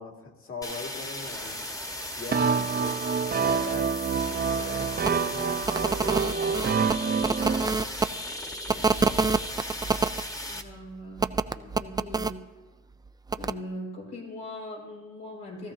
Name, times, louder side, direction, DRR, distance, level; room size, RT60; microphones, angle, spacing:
voice 1, 0.0-1.6 2.2-3.9 4.3-6.8 7.3-7.8 8.6-9.3, left 4 dB, 45° left, 2 dB, 2.1 m, -41 dB
sound 1, 0.6-10.6, left 1 dB, 10° left, 1.3 m, -36 dB
sound 2, 2.3-7.7, right 6 dB, 30° right, 0.7 m, -27 dB
sound 3, 5.0-5.1 5.6-8.1 8.7-10.2 11.2-12.3 13.3-13.5, right 4 dB, 15° right, 0.3 m, -26 dB
voice 2, 10.5-12.4 13.4-15.7, left 1 dB, 85° left, -3 dB, 4.5 m, -40 dB
16.5 x 14.0 x 2.7 m, 1.3 s
cardioid pair, 90°, 30 cm